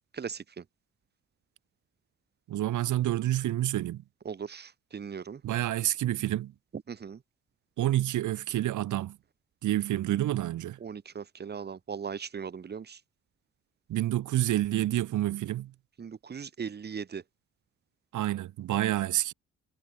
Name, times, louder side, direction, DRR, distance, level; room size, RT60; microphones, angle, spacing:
voice 1, 0.1-0.6 4.2-5.4 6.9-7.2 10.8-13.0 16.0-17.2, right 6 dB, 35° right, 1.2 m, -38 dB
voice 2, 2.5-4.0 5.4-6.5 7.8-9.2 9.6-10.8 13.9-15.7 18.1-19.3, right 13 dB, 80° right, 2.2 m, -28 dB
cardioid pair, 90°, 30 cm